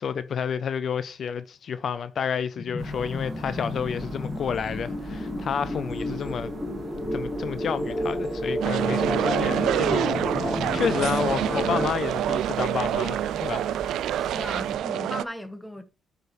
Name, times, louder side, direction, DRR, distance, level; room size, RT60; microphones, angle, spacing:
voice 1, 0.0-6.5 7.1-13.9, left 7 dB, 55° left, 0.5 m, -30 dB
sound 1, 2.6-11.9, left 1 dB, 20° left, 1.5 m, -31 dB
sound 2, 2.8-14.8, right 3 dB, 40° right, 1.7 m, -41 dB
sound 3, 8.6-15.2, right 11 dB, 80° right, 0.3 m, -27 dB
voice 2, 14.2-15.8, equal, 5° left, 1.0 m, -37 dB
11.0 x 5.0 x 3.1 m
cardioid pair, 90°, 0 cm